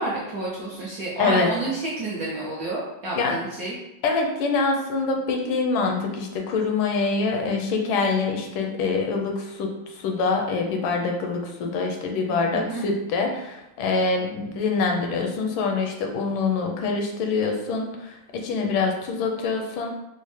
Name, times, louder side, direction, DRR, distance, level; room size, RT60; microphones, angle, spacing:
voice 1, 0.0-3.8 12.5-12.8, right 2 dB, 65° right, -7 dB, 0.9 m, -29 dB
voice 2, 1.2-1.5 3.1-3.4 4.0-19.9, left 4 dB, 80° left, 2 dB, 1.4 m, -25 dB
4.1 x 2.0 x 3.1 m, 0.93 s
omnidirectional pair, 2.3 m